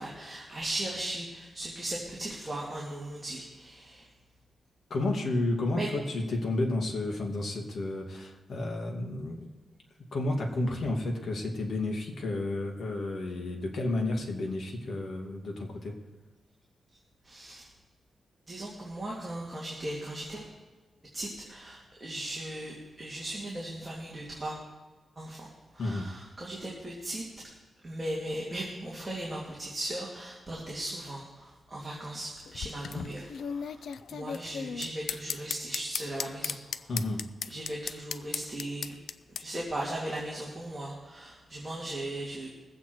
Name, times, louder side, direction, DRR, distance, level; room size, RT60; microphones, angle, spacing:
voice 1, 0.0-4.1 5.7-5.9 17.2-17.7 18.5-20.5 21.1-24.6 25.2-25.5 25.7-27.2 27.8-36.9 37.5-38.9 39.4-42.5, right 1 dB, 15° right, -4 dB, 2.2 m, -37 dB
voice 2, 4.9-9.5 10.1-16.0 25.8-26.1 36.9-37.3, left 2 dB, 55° left, 0 dB, 2.2 m, -31 dB
sound 1, 32.4-39.4, left 7 dB, 80° left, 0.4 m, -36 dB
20.5 x 8.0 x 4.6 m, 1.3 s
wide cardioid pair, 145°, 0 cm